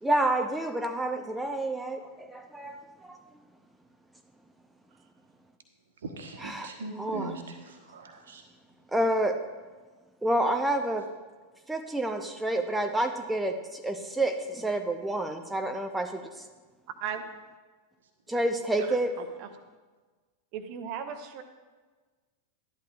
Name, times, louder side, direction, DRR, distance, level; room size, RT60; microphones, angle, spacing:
voice 1, 0.0-3.2 6.4-7.3 8.9-9.4 10.2-11.1 11.7-16.5 18.3-19.1, right 1 dB, 5° right, 5 dB, 0.6 m, -29 dB
voice 2, 6.0-8.4, right 3 dB, 65° right, 5 dB, 1.2 m, -40 dB
voice 3, 18.9-19.5 20.5-21.4, right 8 dB, 45° right, 8 dB, 0.9 m, -37 dB
12.0 x 11.0 x 2.5 m, 1.3 s
figure-of-eight pair, 90°, 0 cm